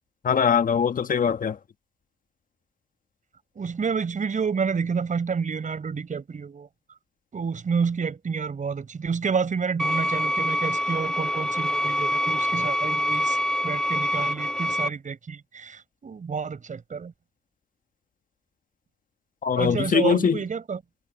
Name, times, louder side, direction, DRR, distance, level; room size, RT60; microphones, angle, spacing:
voice 1, 0.2-1.6 19.4-20.4, left 7 dB, 45° left, 1.4 m, -22 dB
voice 2, 3.6-6.7 7.3-13.4 13.6-17.1 19.6-20.8, right 5 dB, 40° right, 5.3 m, -29 dB
sound 1, 9.8-14.9, equal, 5° left, 0.9 m, -25 dB
cardioid pair, 90°, 20 cm